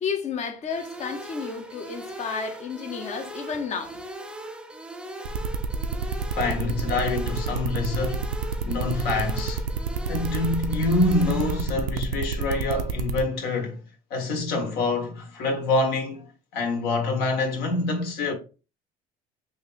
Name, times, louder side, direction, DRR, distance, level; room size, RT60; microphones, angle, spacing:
voice 1, 0.0-4.0, left 6 dB, 45° left, 0.9 m, -32 dB
sound 1, 0.7-11.7, right 1 dB, 5° right, 0.4 m, -39 dB
sound 2, 5.2-13.2, right 7 dB, 90° right, 0.5 m, -29 dB
voice 2, 6.3-8.2 8.6-9.6 10.1-13.8 14.1-18.3, left 3 dB, 70° left, 1.6 m, -26 dB
3.4 x 2.7 x 4.1 m
supercardioid pair, 100°, 17 cm